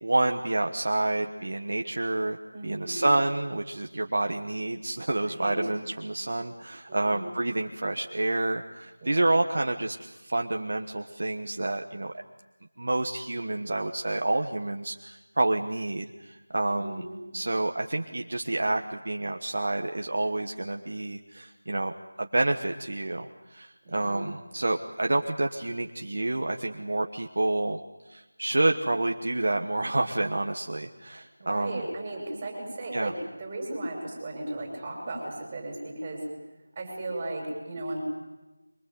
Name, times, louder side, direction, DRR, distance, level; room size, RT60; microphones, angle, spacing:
voice 1, 0.0-2.4 2.6-12.2 12.8-17.0 17.3-21.9 22.2-27.8 28.1-31.8 32.9-33.1, right 2 dB, 50° right, 4 dB, 1.3 m, -28 dB
voice 2, 2.5-3.1 5.2-5.7 6.9-7.3 9.0-9.4 16.7-17.2 23.8-24.2 31.4-36.3 36.7-38.0, right 1 dB, 15° right, 0 dB, 6.3 m, -36 dB
24.0 x 24.0 x 7.9 m, 1.1 s
figure-of-eight pair, 175°, 0 cm